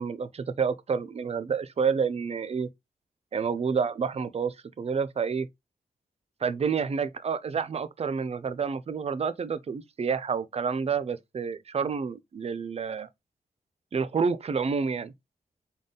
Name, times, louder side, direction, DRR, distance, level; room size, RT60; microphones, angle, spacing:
voice 1, 0.0-2.7 3.3-5.5 6.4-13.1 13.9-15.1, right 6 dB, 45° right, 0.5 m, -29 dB
3.9 x 3.6 x 3.6 m
wide cardioid pair, 115°, 15 cm